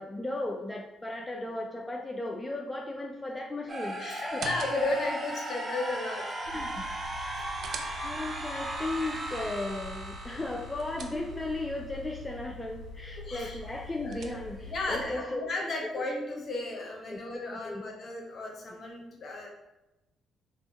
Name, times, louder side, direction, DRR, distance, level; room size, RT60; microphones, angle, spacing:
voice 1, 0.0-4.5 6.5-6.9 8.0-15.4 15.8-16.0 17.1-17.8, left 2 dB, 20° left, 1 dB, 0.3 m, -36 dB
sound 1, 3.7-11.6, right 1 dB, 40° right, 0.7 m, -37 dB
voice 2, 4.0-6.2 7.7-7.8 11.0-11.2 13.2-13.6 14.0-14.3 14.7-19.5, left 2 dB, 55° left, 0 dB, 0.8 m, -34 dB
sound 2, 4.2-5.1 7.1-8.4 10.4-11.6 13.6-14.7, right 4 dB, 60° right, 0.3 m, -45 dB
sound 3, 6.4-15.1, left 2 dB, 90° left, 0.5 m, -45 dB
3.4 x 2.0 x 2.9 m, 0.99 s
hypercardioid pair, 45°, 0 cm